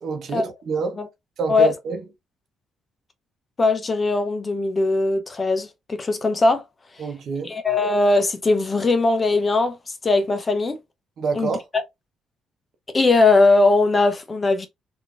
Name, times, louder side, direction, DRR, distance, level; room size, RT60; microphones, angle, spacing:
voice 1, 0.0-1.0 1.4-2.0 7.0-7.6 11.2-11.7, right 5 dB, 65° right, 0.9 m, -27 dB
voice 2, 3.6-6.6 7.4-9.8 10.0-10.8 11.3-11.5 12.9-14.7, left 3 dB, 30° left, 0.7 m, -19 dB
3.6 x 2.7 x 2.5 m
cardioid pair, 90°, 0 cm